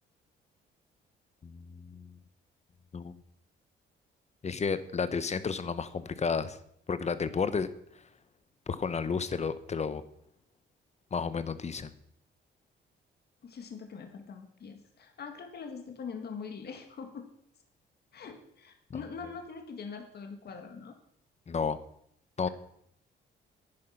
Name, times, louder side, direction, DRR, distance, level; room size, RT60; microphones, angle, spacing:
voice 1, 1.4-2.2 2.9-3.1 4.4-6.6 6.9-7.7 8.7-10.0 11.1-11.9 21.5-21.8 22.4-22.5, left 5 dB, 35° left, 14 dB, 1.0 m, -32 dB
voice 2, 13.4-17.3 18.1-20.9, left 5 dB, 55° left, 5 dB, 1.9 m, -43 dB
10.5 x 9.9 x 5.9 m, 0.71 s
cardioid pair, 90°, 20 cm